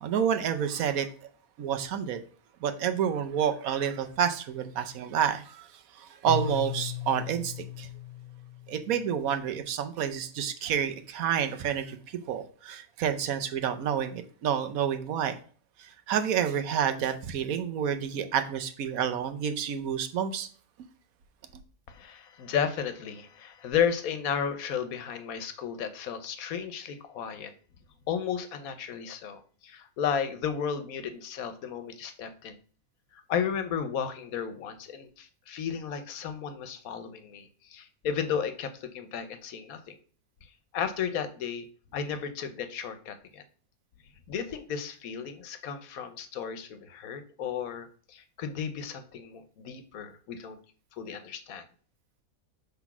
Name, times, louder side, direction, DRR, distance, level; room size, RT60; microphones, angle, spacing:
voice 1, 0.0-1.1 1.6-2.2 2.6-5.7 6.0-7.9 8.7-12.0 12.3-15.4 16.1-20.5, right 8 dB, 75° right, 8 dB, 1.1 m, -29 dB
Keyboard (musical), 6.3-9.2, left 6 dB, 50° left, 0.5 m, -37 dB
voice 2, 21.9-27.5 28.1-32.6 33.1-40.0 40.7-41.6 41.9-43.4 44.3-50.6 51.0-51.6, left 7 dB, 75° left, 10 dB, 1.2 m, -33 dB
5.9 x 3.5 x 5.9 m, 0.43 s
omnidirectional pair, 1.5 m